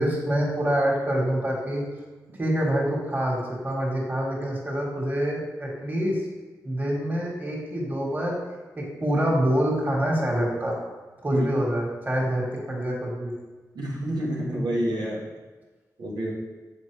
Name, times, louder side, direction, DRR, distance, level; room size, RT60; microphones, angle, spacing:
voice 1, 0.0-1.8 2.4-6.2 6.6-8.4 8.8-10.7 11.2-13.3, equal, 25° right, -3 dB, 1.7 m, -26 dB
voice 2, 13.7-15.3 16.0-16.3, right 1 dB, 85° right, -4 dB, 1.3 m, -28 dB
7.2 x 4.2 x 3.4 m, 1.3 s
wide cardioid pair, 90°, 7 cm